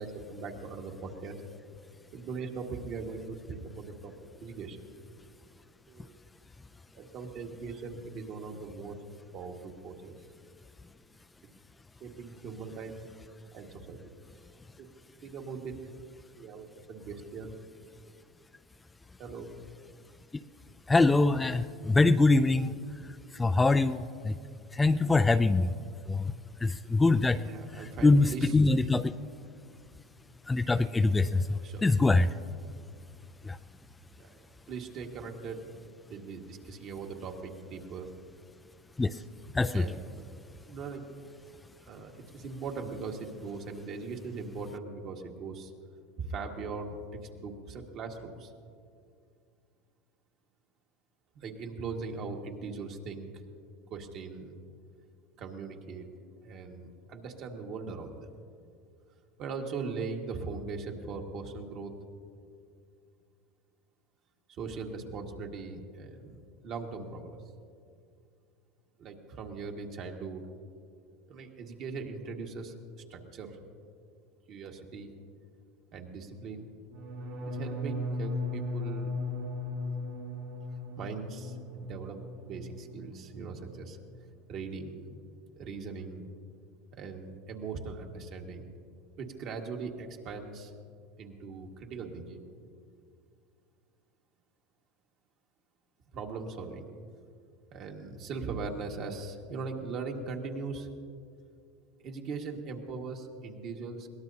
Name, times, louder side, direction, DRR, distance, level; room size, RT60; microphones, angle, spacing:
voice 1, 0.0-1.4 2.1-4.1 4.4-4.8 5.9-6.2 6.9-9.0 9.3-10.1 12.0-12.9 13.5-14.1 14.8-14.9 15.2-15.8 16.3-17.5 19.2-19.5 27.4-28.8 31.1-31.9 34.2-34.4 34.7-35.6 36.1-38.1 39.7-40.3 40.7-41.0 41.8-45.7 46.2-47.0 47.3-48.5 51.3-53.3 53.9-54.5 55.4-56.1 56.4-58.3 59.4-61.9 64.6-67.4 69.0-70.4 71.3-72.7 73.1-73.6 74.5-75.1 75.9-76.7 77.4-79.1 81.0-84.0 84.5-85.2 85.5-86.3 86.9-88.7 89.2-90.7 91.2-92.5 96.1-96.9 97.7-100.9 102.0-104.1, right 4 dB, 50° right, 2 dB, 1.7 m, -40 dB
voice 2, 20.9-22.7 23.4-24.3 24.7-25.7 26.1-26.2 26.6-27.4 28.0-29.1 30.5-32.3 33.5-33.6 39.0-39.1 39.5-39.8, left 3 dB, 15° left, 10 dB, 0.3 m, -24 dB
sound 1, 76.9-82.8 83.1-83.6 83.9-84.3, left 2 dB, 80° right, 2.4 m, -37 dB
22.0 x 17.5 x 2.8 m, 2.4 s
supercardioid pair, 110°, 0 cm